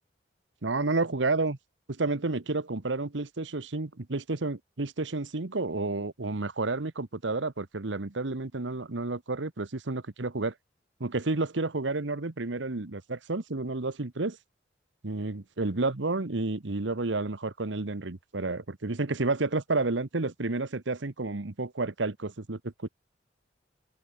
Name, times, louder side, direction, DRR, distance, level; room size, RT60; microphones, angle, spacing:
voice 1, 0.6-1.6 2.0-10.5 11.0-14.4 15.0-22.9, right 3 dB, 85° right, 1.2 m, -30 dB
open air
head